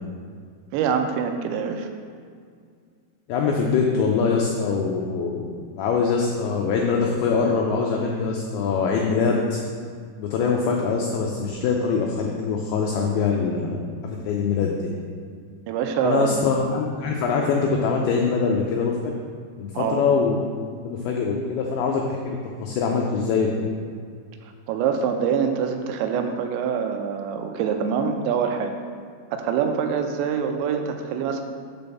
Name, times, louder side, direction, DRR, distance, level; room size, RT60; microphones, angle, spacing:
voice 1, 0.7-1.9 15.7-16.4 19.7-20.0 24.7-28.7 29.3-31.4, right 7 dB, 85° right, 5 dB, 2.9 m, -25 dB
voice 2, 3.3-5.5 5.8-9.6 10.2-13.8 14.0-14.9 16.0-19.1 19.6-20.4 20.8-23.7, left 5 dB, 85° left, 0 dB, 2.2 m, -23 dB
6.1 x 5.3 x 6.9 m, 2.1 s
omnidirectional pair, 5.2 m